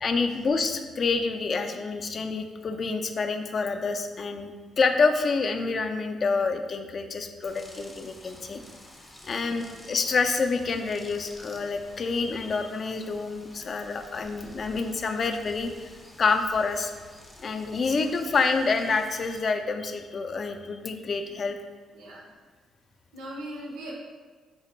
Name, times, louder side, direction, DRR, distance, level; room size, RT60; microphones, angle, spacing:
voice 1, 0.0-8.6 9.2-15.9 16.2-16.9 17.4-21.6, left 4 dB, 45° left, 6 dB, 0.3 m, -27 dB
sound 1, 7.4-19.4, left 1 dB, 15° left, 0.6 m, -50 dB
voice 2, 21.9-22.3 23.1-23.9, right 1 dB, 90° right, -2 dB, 0.6 m, -41 dB
3.9 x 2.5 x 3.0 m, 1.4 s
cardioid pair, 90°, 0 cm